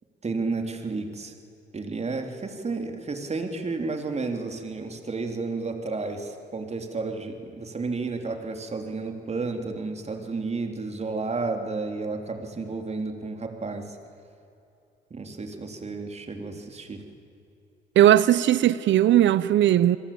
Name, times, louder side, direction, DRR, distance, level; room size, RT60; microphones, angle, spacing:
voice 1, 0.2-1.3 1.7-14.0 15.1-17.0, right 3 dB, 35° right, 3.5 m, -32 dB
voice 2, 18.0-20.0, right 12 dB, 70° right, 0.8 m, -18 dB
28.0 x 22.0 x 8.7 m
cardioid pair, 90°, 20 cm